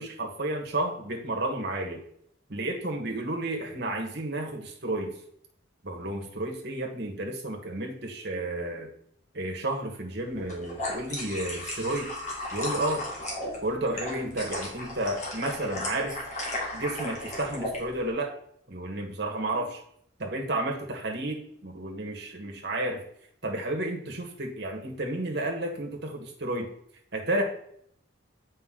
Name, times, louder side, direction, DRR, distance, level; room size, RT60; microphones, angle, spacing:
voice 1, 0.0-2.0 2.5-5.1 5.8-8.9 9.3-12.1 12.5-13.0 13.6-16.2 16.7-18.3 18.7-19.8 20.2-23.0 23.4-26.7 27.1-27.4, right 1 dB, 55° right, 2 dB, 1.4 m, -31 dB
sound 1, 10.4-17.8, left 1 dB, 35° left, 2.0 m, -35 dB
7.8 x 5.3 x 3.8 m, 0.68 s
head